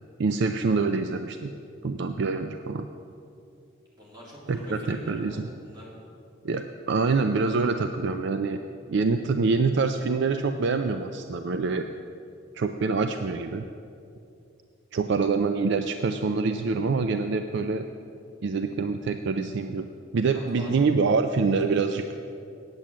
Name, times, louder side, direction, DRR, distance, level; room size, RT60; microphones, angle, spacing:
voice 1, 0.2-1.5 1.8-2.9 4.5-5.5 6.4-8.6 8.9-11.9 12.5-13.6 14.9-17.9 18.4-19.9 20.1-22.0, right 4 dB, 60° right, 7 dB, 0.4 m, -25 dB
voice 2, 4.0-5.9 20.3-20.9, left 1 dB, 20° right, -5 dB, 2.9 m, -44 dB
9.0 x 8.5 x 7.4 m, 2.6 s
head